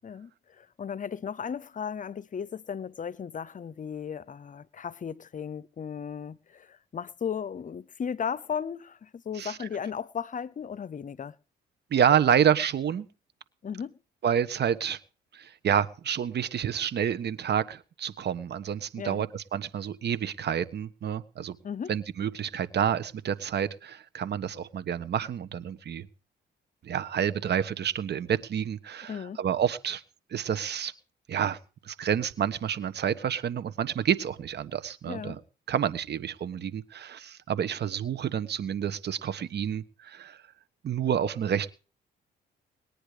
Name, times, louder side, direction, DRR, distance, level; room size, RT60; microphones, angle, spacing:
voice 1, 0.0-11.4 13.6-14.0 19.0-19.2 21.6-21.9 29.1-29.4 35.1-35.4, left 7 dB, 40° left, 0.8 m, -36 dB
voice 2, 11.9-13.1 14.2-15.0 15.3-21.6 21.9-26.1 26.8-30.0 30.3-30.9 31.3-31.6 31.8-35.4 35.7-40.4 40.8-41.7, right 8 dB, 60° right, 1.3 m, -28 dB
20.5 x 10.0 x 5.0 m
cardioid pair, 90°, 20 cm